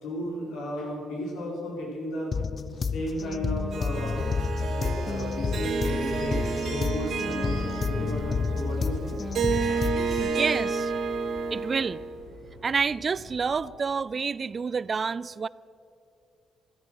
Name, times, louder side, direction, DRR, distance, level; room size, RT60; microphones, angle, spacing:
voice 1, 0.0-2.3 2.8-4.2 4.7-9.2, equal, 85° left, -2 dB, 4.4 m, -34 dB
sound 1, 2.3-10.3, left 5 dB, 40° left, 0.5 m, -30 dB
sound 2, 2.9-13.6, left 2 dB, 70° left, 2.0 m, -47 dB
Harp, 3.7-12.1, right 5 dB, 65° right, 2.2 m, -31 dB
voice 2, 10.2-10.9 11.5-12.0 12.6-15.5, right 5 dB, 40° right, 20 dB, 0.3 m, -28 dB
13.0 x 13.0 x 6.3 m, 2.6 s
cardioid pair, 90°, 0 cm